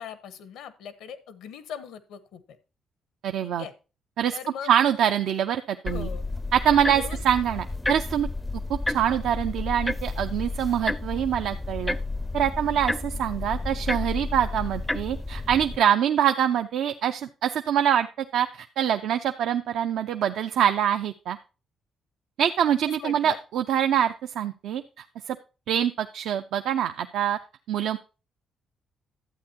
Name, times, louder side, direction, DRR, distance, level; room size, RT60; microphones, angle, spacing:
voice 1, 0.0-2.4 3.4-3.7 4.3-4.7 5.9-6.2 6.7-7.2 23.0-23.4, left 8 dB, 85° left, 13 dB, 1.2 m, -39 dB
voice 2, 3.2-3.6 4.2-4.4 4.6-6.1 6.5-8.3 8.7-11.9 12.3-21.4 22.4-24.8 25.3-25.4 25.7-27.4 27.7-28.0, right 9 dB, 80° right, 7 dB, 0.6 m, -25 dB
sound 1, 5.9-15.8, left 2 dB, 10° left, 0.5 m, -31 dB
12.0 x 8.5 x 2.8 m, 0.32 s
cardioid pair, 90°, 0 cm